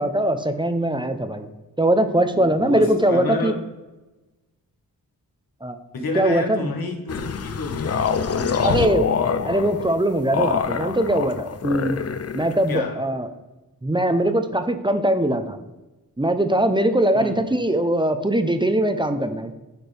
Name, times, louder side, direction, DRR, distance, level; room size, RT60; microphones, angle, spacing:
voice 1, 0.0-1.5 1.8-3.5 5.6-5.8 6.2-6.7 8.6-9.1 9.4-12.0 12.3-13.3 13.8-15.6 16.2-19.5, right 1 dB, 15° right, 9 dB, 0.6 m, -21 dB
voice 2, 2.6-3.5 5.9-8.9 12.7-13.0 17.1-17.4, left 3 dB, 75° left, 3 dB, 1.3 m, -30 dB
sound 1, 7.1-12.8, left 6 dB, 45° left, 0.5 m, -25 dB
9.3 x 4.4 x 3.3 m, 1.1 s
cardioid pair, 65°, 37 cm